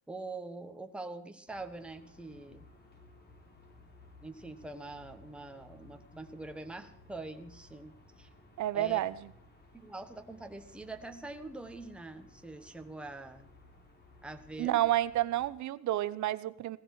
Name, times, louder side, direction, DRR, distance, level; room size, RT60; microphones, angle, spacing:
voice 1, 0.1-2.6 4.2-8.3 8.7-9.0 9.7-13.5 14.2-14.9, right 2 dB, 5° right, 1.3 m, -44 dB
sound 1, 1.5-15.5, left 2 dB, 30° left, 3.8 m, -58 dB
voice 2, 8.6-9.1 14.6-16.8, right 14 dB, 50° right, 0.9 m, -30 dB
17.5 x 15.0 x 4.8 m
cardioid pair, 140°, 36 cm